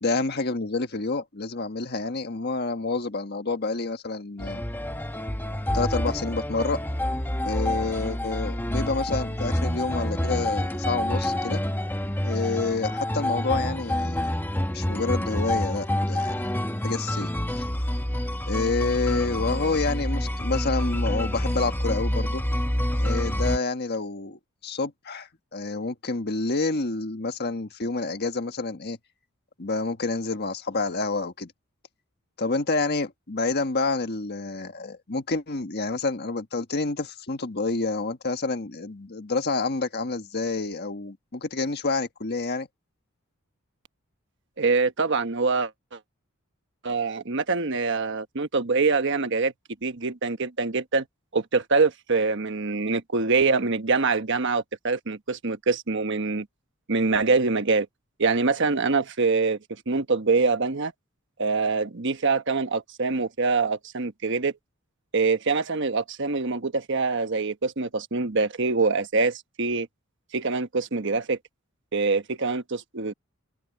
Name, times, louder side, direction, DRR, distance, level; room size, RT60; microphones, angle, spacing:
voice 1, 0.0-4.6 5.7-6.8 7.4-11.6 12.2-14.3 14.7-16.5 16.8-17.3 17.6-17.7 18.5-22.4 22.9-29.0 29.6-31.5 32.4-42.7, left 3 dB, 50° left, 1.5 m, -28 dB
sound 1, 4.4-23.6, left 1 dB, 10° left, 1.0 m, -27 dB
voice 2, 44.6-46.0 46.8-49.5 49.8-51.0 51.3-56.5 56.9-57.9 58.2-59.6 59.9-60.9 61.4-64.5 65.1-69.9 70.3-71.4 71.9-73.1, right 4 dB, 55° right, 1.2 m, -24 dB
head